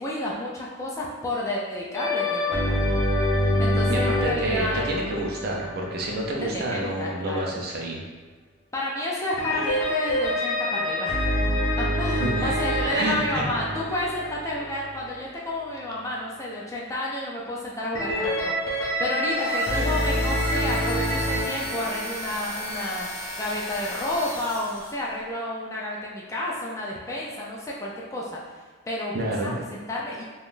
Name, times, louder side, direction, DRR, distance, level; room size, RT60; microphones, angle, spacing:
voice 1, 0.0-3.0 3.6-4.9 6.4-7.6 8.7-23.1 23.4-28.4 28.9-29.2 29.4-30.2, left 1 dB, 15° left, -4 dB, 0.4 m, -31 dB
sound 1, 1.9-6.9 9.4-15.4 17.9-21.7, equal, 80° left, 0.7 m, -26 dB
voice 2, 3.9-8.0 12.2-12.6 12.9-13.5 29.1-29.6, right 1 dB, 50° right, -1 dB, 0.5 m, -29 dB
sound 2, 19.3-25.1, equal, 20° right, 1.5 m, -35 dB
3.5 x 2.3 x 2.5 m, 1.4 s
head